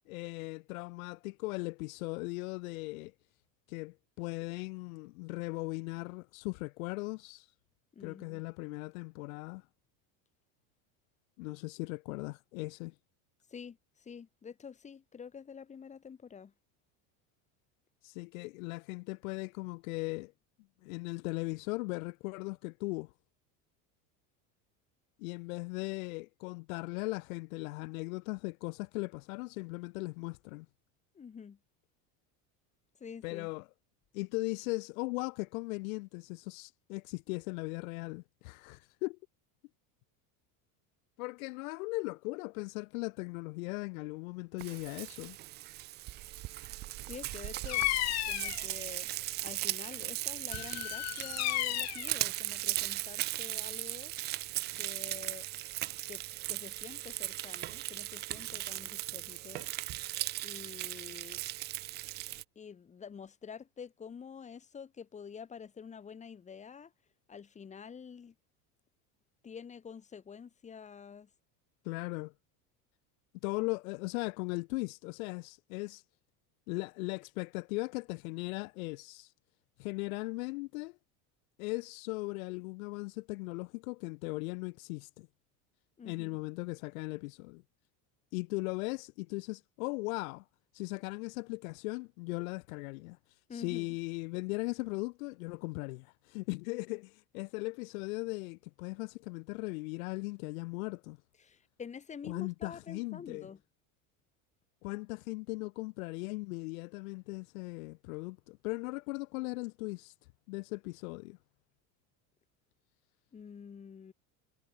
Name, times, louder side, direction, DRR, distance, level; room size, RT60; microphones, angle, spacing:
voice 1, 0.1-3.1 3.7-7.5 8.0-9.6 11.4-12.9 18.0-20.3 20.8-23.1 25.2-30.7 33.2-33.7 34.1-39.2 41.2-45.4 71.8-72.3 73.4-76.0 76.7-79.3 79.8-81.0 81.6-85.3 86.0-87.6 88.3-90.4 90.7-93.2 93.5-101.2 102.2-103.5 104.8-110.1 110.5-111.4, left 25 dB, 80° left, 1.3 m, -38 dB
voice 2, 7.9-8.4 13.5-16.5 31.1-31.6 33.0-33.5 47.1-47.8 48.2-49.1 49.4-54.1 54.7-55.5 56.1-56.2 56.5-59.7 60.4-61.4 62.5-66.9 67.3-68.3 69.4-71.3 86.0-86.4 93.5-94.0 101.4-103.6 113.3-114.1, left 6 dB, 15° left, 5.0 m, -48 dB
Frying (food), 44.6-62.4, right 17 dB, 25° right, 0.4 m, -38 dB
Bird vocalization bird call bird song, 47.7-48.6 50.5-52.1, left 19 dB, 40° left, 1.6 m, -33 dB
cardioid pair, 175°, 41 cm